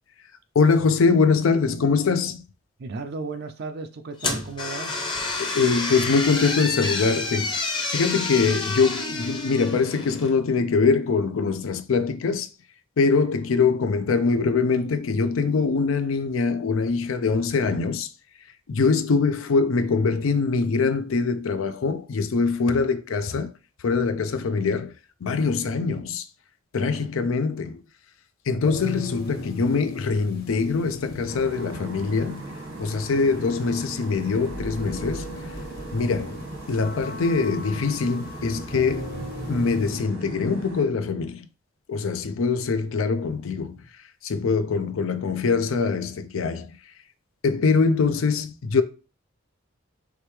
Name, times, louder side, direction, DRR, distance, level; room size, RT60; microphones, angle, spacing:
voice 1, 0.5-2.4 5.4-12.5 13.0-18.1 18.7-23.5 23.8-24.9 25.2-26.2 26.7-27.8 28.5-32.4 32.8-35.3 35.9-39.1 39.5-41.5 41.9-43.8 44.2-46.7 47.4-48.8, left 4 dB, 80° left, 0.5 m, -23 dB
voice 2, 2.8-5.0 26.9-27.1, right 3 dB, 55° right, 0.4 m, -35 dB
sound 1, 4.2-10.4, left 3 dB, 25° left, 0.7 m, -29 dB
sound 2, 28.6-40.0, equal, 50° left, 1.2 m, -39 dB
sound 3, 31.3-40.8, right 2 dB, 90° right, 1.4 m, -38 dB
4.8 x 3.4 x 3.2 m
head